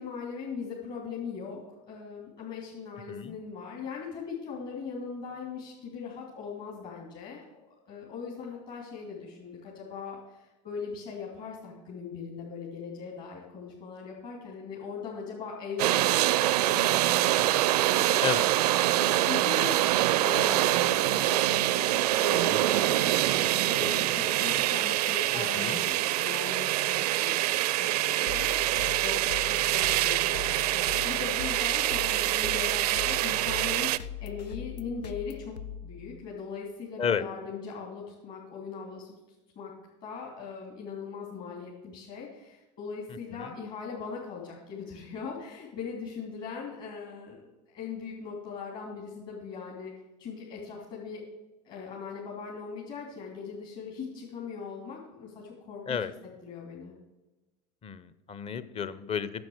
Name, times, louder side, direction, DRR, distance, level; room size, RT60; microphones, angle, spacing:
voice 1, 0.0-1.6 1.9-7.4 7.8-18.3 18.9-19.7 20.1-33.9 34.2-35.5 35.8-39.1 39.5-39.7 40.0-47.4 47.7-49.9 50.2-51.2 51.6-56.0 56.4-56.9, left 5 dB, 45° left, -4 dB, 3.0 m, -40 dB
sound 1, 15.8-34.0, right 15 dB, 65° right, 0.4 m, -25 dB
voice 2, 25.3-25.8 37.0-37.2 43.3-43.5 55.9-56.1 57.8-59.5, left 7 dB, 25° left, 15 dB, 0.7 m, -32 dB
sound 2, 28.3-36.4, left 9 dB, 75° left, 0.6 m, -41 dB
10.5 x 7.2 x 6.4 m, 1.1 s
figure-of-eight pair, 80°, 21 cm